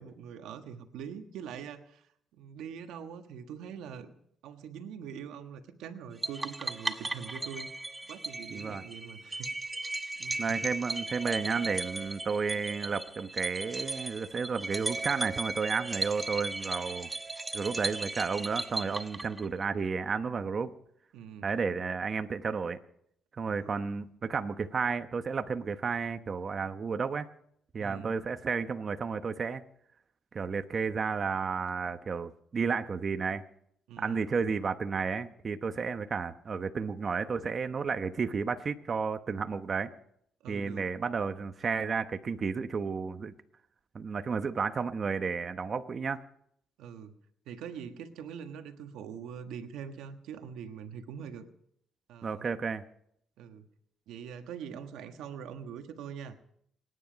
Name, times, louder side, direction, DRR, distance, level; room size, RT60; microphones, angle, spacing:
voice 1, 0.0-2.1 2.3-4.1 4.4-7.7 8.1-9.5 10.2-10.4 21.1-21.5 23.6-23.8 27.8-28.2 33.9-34.2 40.4-40.9 46.8-47.1 47.5-51.5 52.1-52.5 53.4-53.7 54.1-56.4, right 7 dB, 90° right, 7 dB, 1.4 m, -43 dB
sound 1, 6.2-19.7, right 2 dB, 20° right, 1.1 m, -36 dB
voice 2, 8.5-8.8 10.4-17.1 17.5-20.7 21.4-22.8 23.4-27.3 27.7-29.6 30.3-33.4 34.0-39.9 40.5-43.3 43.9-46.2 52.2-52.8, right 5 dB, 40° right, 9 dB, 0.9 m, -32 dB
26.5 x 9.8 x 5.2 m, 0.70 s
cardioid pair, 90°, 0 cm